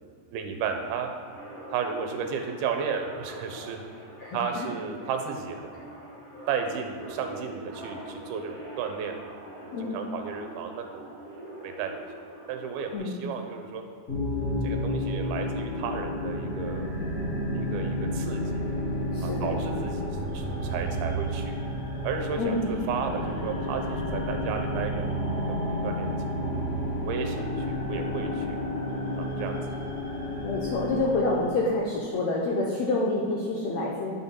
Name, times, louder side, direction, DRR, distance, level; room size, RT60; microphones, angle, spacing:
voice 1, 0.3-1.1 1.7-3.8 4.3-5.8 6.5-9.2 9.6-11.1 11.6-12.0 12.5-13.8 14.6-17.0 17.5-18.6 19.2-20.1 20.3-21.5 22.0-26.6 27.0-28.6 29.2-29.6, right 6 dB, 85° right, 5 dB, 2.8 m, -33 dB
sound 1, 1.3-13.0, right 1 dB, 20° right, 1.9 m, -44 dB
voice 2, 4.2-4.7 9.7-10.0 12.9-13.2 19.1-19.6 19.9-20.0 22.4-22.6 30.4-34.1, left 2 dB, 80° left, -3 dB, 1.6 m, -28 dB
sound 2, 14.1-31.5, equal, 45° left, 0.8 m, -31 dB
9.8 x 5.5 x 5.7 m, 2.3 s
omnidirectional pair, 4.4 m